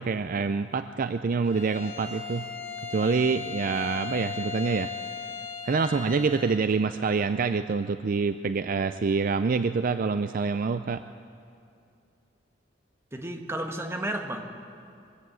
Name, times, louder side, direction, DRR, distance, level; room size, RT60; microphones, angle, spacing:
voice 1, 0.0-2.5 2.9-4.9 5.6-11.0, right 4 dB, 50° right, 11 dB, 0.4 m, -26 dB
Bowed string instrument, 1.4-6.7, left 6 dB, 45° left, 5.6 m, -37 dB
voice 2, 13.1-14.4, right 1 dB, 15° right, 4 dB, 1.4 m, -32 dB
22.0 x 15.5 x 7.8 m, 2.5 s
head